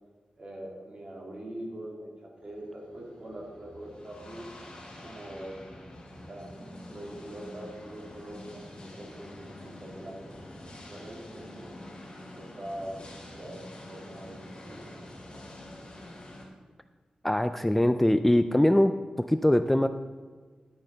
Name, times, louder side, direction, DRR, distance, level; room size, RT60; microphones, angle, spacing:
voice 1, 0.4-4.5 5.0-5.5 6.3-10.4 10.9-11.7 12.4-15.1, right 1 dB, 45° right, -2 dB, 2.6 m, -43 dB
sound 1, 2.4-16.5, left 1 dB, 40° left, 3.0 m, -46 dB
voice 2, 17.2-19.9, left 1 dB, 5° left, 10 dB, 0.3 m, -23 dB
11.5 x 9.0 x 4.0 m, 1.4 s
wide cardioid pair, 115°, 2 cm